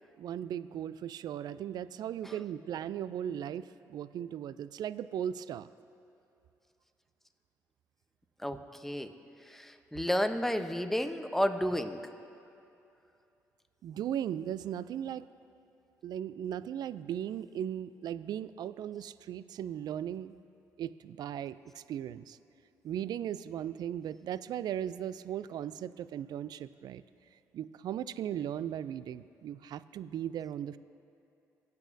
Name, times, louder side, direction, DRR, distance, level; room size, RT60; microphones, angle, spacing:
voice 1, 0.2-5.7 13.8-15.3 16.0-20.3 20.8-22.4 22.8-27.0 27.5-30.8, right 10 dB, 65° right, 16 dB, 0.3 m, -37 dB
voice 2, 9.5-12.0, equal, 5° left, 8 dB, 0.8 m, -31 dB
23.5 x 8.3 x 2.7 m, 2.7 s
supercardioid pair, 50°, 7 cm